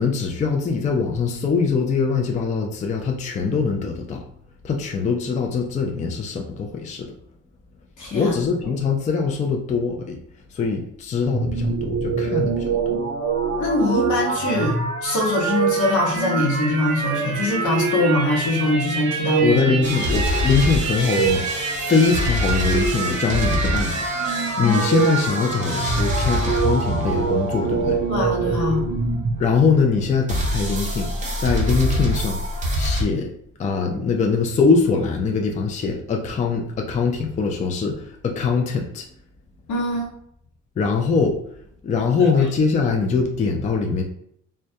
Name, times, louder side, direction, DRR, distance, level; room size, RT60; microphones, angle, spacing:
voice 1, 0.0-4.2 4.6-7.1 8.1-10.2 10.5-13.0 19.4-28.0 29.4-31.1 31.4-32.4 32.8-33.3 33.6-39.0 40.8-41.4 41.8-44.0, left 5 dB, 25° left, 2 dB, 0.3 m, -22 dB
voice 2, 8.0-8.3 13.4-19.6 24.6-24.9 28.1-28.9 39.7-40.1 42.2-42.3, left 2 dB, 75° left, -2 dB, 0.9 m, -23 dB
sound 1, 11.2-29.4, right 5 dB, 60° right, 0.6 m, -25 dB
sound 2, 19.8-29.8 30.3-33.0, equal, 25° right, 0.6 m, -26 dB
2.2 x 2.2 x 2.7 m, 0.70 s
cardioid pair, 90°, 30 cm